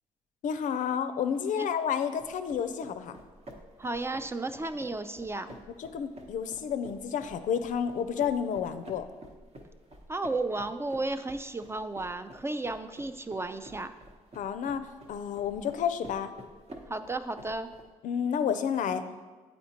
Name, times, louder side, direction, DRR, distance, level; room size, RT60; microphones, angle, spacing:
voice 1, 0.4-3.1 5.8-9.0 14.4-16.3 18.0-19.1, left 7 dB, 65° left, 10 dB, 0.4 m, -30 dB
sound 1, 2.2-17.9, right 1 dB, 50° right, 1.0 m, -50 dB
voice 2, 3.8-5.5 10.1-13.9 16.9-17.7, right 2 dB, 20° right, 10 dB, 0.3 m, -33 dB
8.0 x 4.3 x 2.9 m, 1.4 s
supercardioid pair, 60°, 14 cm